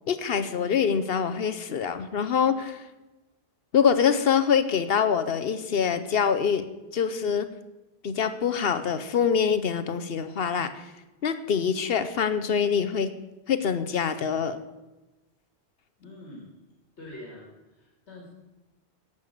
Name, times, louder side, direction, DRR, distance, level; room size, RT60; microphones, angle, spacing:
voice 1, 0.1-2.8 3.7-6.7 6.9-7.5 8.0-10.8 11.2-13.1 13.5-14.6, left 7 dB, 65° left, 11 dB, 0.9 m, -25 dB
voice 2, 16.0-16.6 17.0-18.3, left 1 dB, 90° left, -1 dB, 2.4 m, -45 dB
11.0 x 8.5 x 6.4 m, 1.1 s
omnidirectional pair, 1.1 m